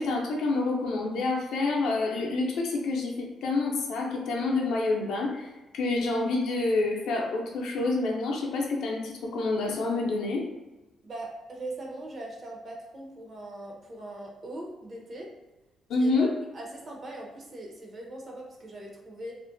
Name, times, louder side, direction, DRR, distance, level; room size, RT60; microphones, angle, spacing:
voice 1, 0.0-10.4 15.9-16.3, left 3 dB, 80° left, 0 dB, 0.5 m, -28 dB
voice 2, 11.0-15.3 16.0-19.3, right 1 dB, 45° right, -1 dB, 0.6 m, -40 dB
2.4 x 2.1 x 2.5 m, 1.1 s
cardioid pair, 90°, 0 cm